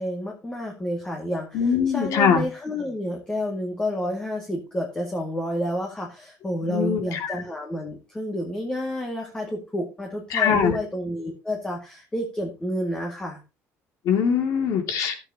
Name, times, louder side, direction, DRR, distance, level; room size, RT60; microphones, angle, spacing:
voice 1, 0.0-13.4, equal, 15° left, 0 dB, 2.2 m, -30 dB
voice 2, 1.5-2.4 6.7-7.3 10.3-10.7 14.1-15.2, left 7 dB, 65° left, 6 dB, 2.6 m, -22 dB
14.5 x 8.2 x 2.9 m, 0.28 s
cardioid pair, 145°, 6 cm